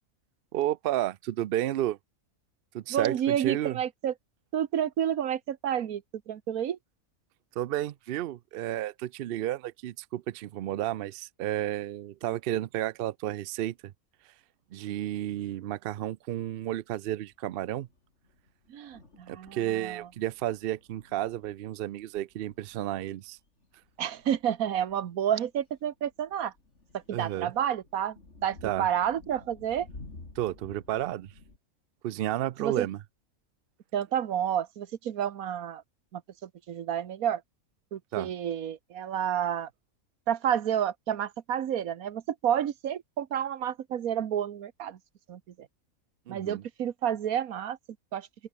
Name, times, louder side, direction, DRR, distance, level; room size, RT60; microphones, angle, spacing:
voice 1, 0.5-2.0 2.7-3.8 7.6-13.9 14.7-17.9 19.3-23.4 27.1-27.5 28.6-28.9 30.4-31.3 32.0-33.0 38.1-38.3 46.3-46.6, right 13 dB, 65° right, 0.5 m, -32 dB
voice 2, 2.9-4.1 4.5-6.8 18.7-20.1 24.0-26.5 26.9-29.9 32.6-32.9 33.9-35.8 36.1-37.4 37.9-39.7 40.3-45.0 45.3-45.7 46.3-47.8 48.1-48.3, right 9 dB, 85° right, 1.5 m, -30 dB
sound 1, 16.5-16.7 17.2-17.4 17.8-31.6, left 3 dB, 55° left, 3.9 m, -53 dB
open air
omnidirectional pair, 1.5 m